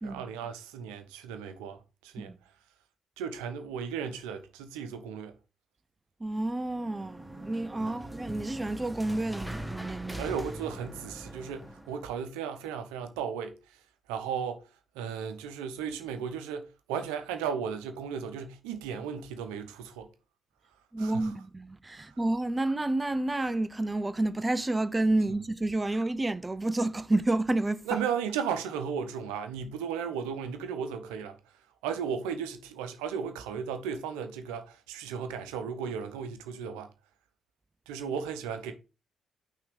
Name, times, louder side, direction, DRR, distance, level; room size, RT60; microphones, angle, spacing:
voice 1, 0.0-2.3 3.2-5.3 7.8-7.9 10.1-13.8 14.1-14.7 14.9-20.1 21.0-21.3 22.0-22.2 27.9-31.6 31.8-36.9 37.9-38.7, right 7 dB, 85° right, 0.8 m, -35 dB
voice 2, 6.2-10.3 20.9-28.0, right 2 dB, 25° right, 0.5 m, -30 dB
sound 1, 6.6-12.1, right 1 dB, ahead, 1.1 m, -42 dB
5.8 x 3.6 x 5.1 m
hypercardioid pair, 50°, 0 cm